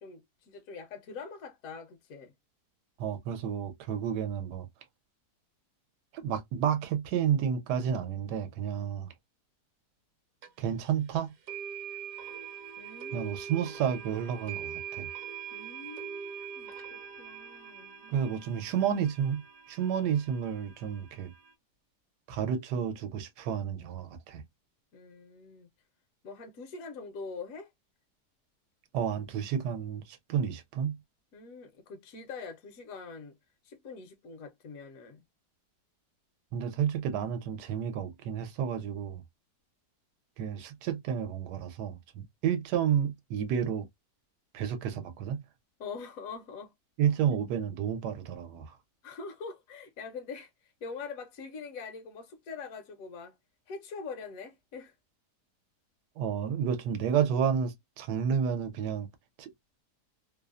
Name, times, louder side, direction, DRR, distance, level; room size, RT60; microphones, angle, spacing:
voice 1, 0.0-2.3 12.8-13.4 15.5-18.3 24.9-25.7 26.2-27.7 31.3-33.4 33.6-35.2 45.8-46.7 49.0-53.4 53.7-54.9, left 4 dB, 70° left, 0.9 m, -44 dB
voice 2, 3.0-4.7 6.1-9.1 10.6-11.3 13.1-15.1 18.1-21.3 22.3-24.4 28.9-31.0 36.5-39.2 40.4-43.9 44.5-45.4 47.0-48.7 56.2-59.1 59.4-59.5, right 8 dB, 80° right, 1.2 m, -31 dB
sound 1, 10.4-10.5 11.5-21.5, right 7 dB, 65° right, 1.1 m, -43 dB
2.9 x 2.0 x 2.3 m
omnidirectional pair, 1.8 m